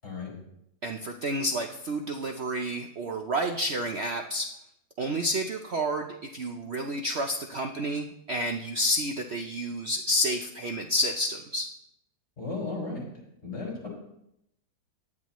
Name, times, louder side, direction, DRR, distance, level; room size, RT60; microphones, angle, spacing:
voice 1, 0.0-0.3 12.4-13.0 13.4-13.9, left 3 dB, 45° left, -3 dB, 5.9 m, -34 dB
voice 2, 0.8-4.5 5.0-11.7, equal, 50° right, 3 dB, 0.9 m, -30 dB
18.0 x 11.0 x 3.1 m, 0.81 s
omnidirectional pair, 1.8 m